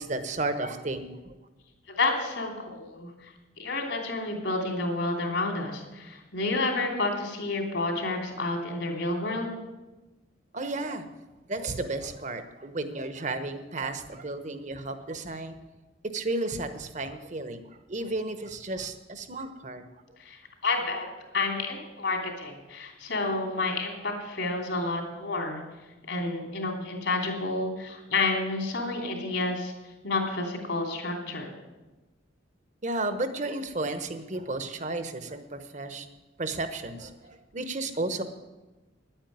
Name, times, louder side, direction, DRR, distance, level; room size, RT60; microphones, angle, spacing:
voice 1, 0.0-1.3 10.5-11.0 11.5-15.6 16.1-17.6 17.9-19.8 32.8-36.1 36.4-38.2, right 2 dB, 40° right, 9 dB, 1.0 m, -33 dB
voice 2, 1.9-3.3 3.6-9.5 20.2-21.1 21.3-25.6 26.1-29.7 30.0-31.5, left 3 dB, 70° left, 2 dB, 3.1 m, -30 dB
10.5 x 9.0 x 9.3 m, 1.1 s
head